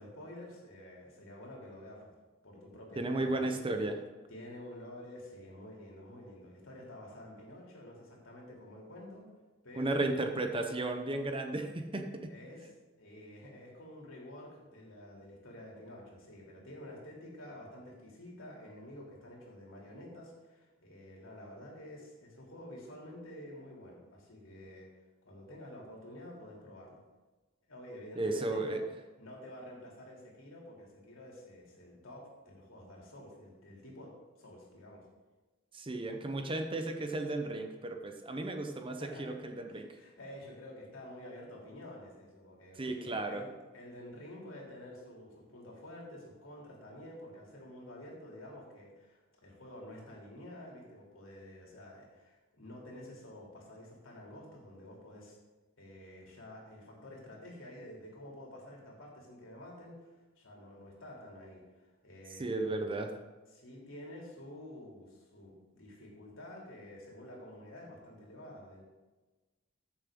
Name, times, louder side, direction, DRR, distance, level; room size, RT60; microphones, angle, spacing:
voice 1, 0.0-2.1 2.4-3.6 4.3-9.3 9.6-10.0 12.3-12.7 13.0-24.9 25.2-27.0 27.7-28.8 29.2-34.1 34.4-35.0 39.0-39.4 39.7-55.4 55.8-62.8 63.5-68.8, left 1 dB, 75° left, -2 dB, 3.1 m, -49 dB
voice 2, 3.0-3.9 9.8-12.3 28.2-28.8 35.7-39.9 42.8-43.4 62.4-63.1, right 2 dB, 25° right, 5 dB, 0.8 m, -34 dB
14.5 x 7.0 x 3.7 m, 1.2 s
head